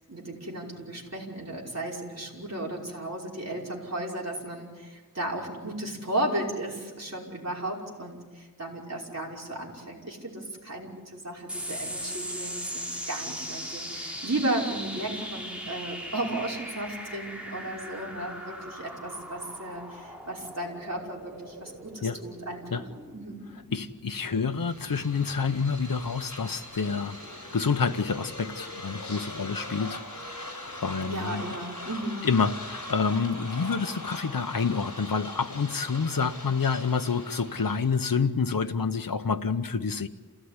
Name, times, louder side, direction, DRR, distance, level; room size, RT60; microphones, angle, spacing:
voice 1, 0.1-22.8 23.1-23.4 31.1-32.3, right 1 dB, 50° right, -3 dB, 5.4 m, -34 dB
sound 1, 11.5-26.3, equal, 5° right, 5.8 m, -40 dB
voice 2, 23.7-31.4 32.2-40.1, left 5 dB, 75° left, 8 dB, 1.0 m, -28 dB
sound 2, 24.5-38.1, left 1 dB, 55° left, 6.8 m, -41 dB
28.5 x 16.5 x 9.8 m, 1.4 s
wide cardioid pair, 60°, 34 cm